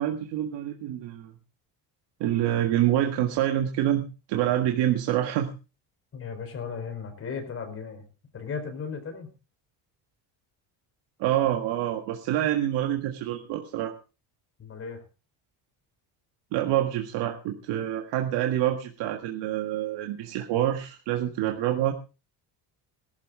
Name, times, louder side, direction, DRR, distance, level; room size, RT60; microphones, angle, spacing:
voice 1, 0.0-1.3 2.2-5.5 11.2-13.9 16.5-21.9, right 12 dB, 85° right, 4 dB, 1.7 m, -26 dB
voice 2, 6.1-8.1 8.3-9.3 14.6-15.0, left 5 dB, 30° left, 6 dB, 4.3 m, -36 dB
18.5 x 12.5 x 3.8 m, 0.33 s
cardioid pair, 160°, 41 cm